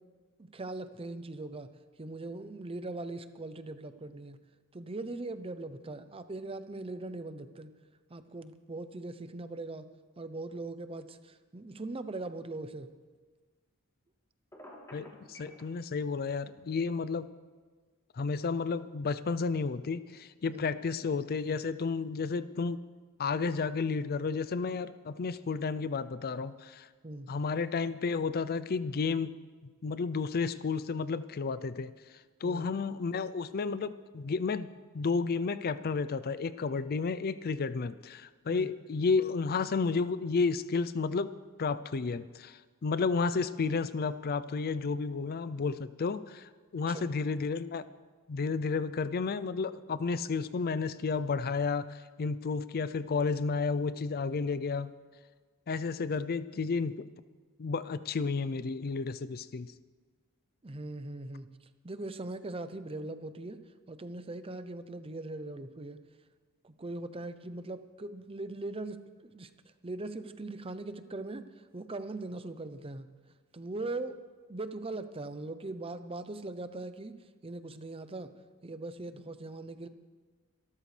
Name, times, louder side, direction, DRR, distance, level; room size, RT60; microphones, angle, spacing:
voice 1, 0.4-1.7 2.0-4.4 4.7-7.7 8.1-9.9 10.2-12.9 20.5-20.7 27.0-27.3 32.4-32.7 38.5-38.7 46.9-47.1 60.6-61.5 61.8-63.6 63.9-66.0 66.6-69.5 69.8-71.4 71.7-73.1 73.5-74.2 74.5-77.1 77.4-78.3 78.6-79.9, right 2 dB, 25° right, 11 dB, 0.6 m, -40 dB
Telephone, 14.5-15.6, left 1 dB, 15° left, 3.2 m, -48 dB
voice 2, 14.9-17.3 18.1-22.8 23.2-26.9 27.3-29.3 29.8-31.9 32.4-41.3 41.6-47.9 48.3-54.9 55.7-57.1 57.6-59.7, left 4 dB, 45° left, 14 dB, 0.4 m, -32 dB
25.5 x 13.0 x 3.3 m, 1.4 s
head